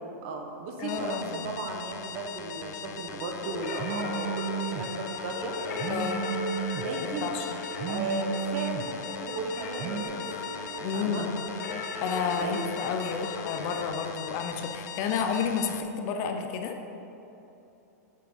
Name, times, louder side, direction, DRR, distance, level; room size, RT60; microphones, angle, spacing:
voice 1, 0.2-5.6 6.7-7.3 7.9-10.3 10.9-11.3 12.4-12.6 13.0-13.1, right 3 dB, 45° right, 3 dB, 1.0 m, -35 dB
voice 2, 0.8-1.5 5.9-6.3 7.2-7.6 10.8-11.3 12.0-16.8, left 6 dB, 35° left, 5 dB, 0.6 m, -31 dB
sound 1, 0.9-15.8, left 9 dB, 85° left, 0.5 m, -41 dB
sound 2, 3.4-13.9, left 2 dB, 65° left, 1.2 m, -37 dB
Telephone, 3.8-4.8 5.8-6.8 7.8-8.8 9.8-10.0, right 8 dB, 25° right, 0.4 m, -33 dB
6.9 x 6.3 x 5.4 m, 2.9 s
supercardioid pair, 160°, 9 cm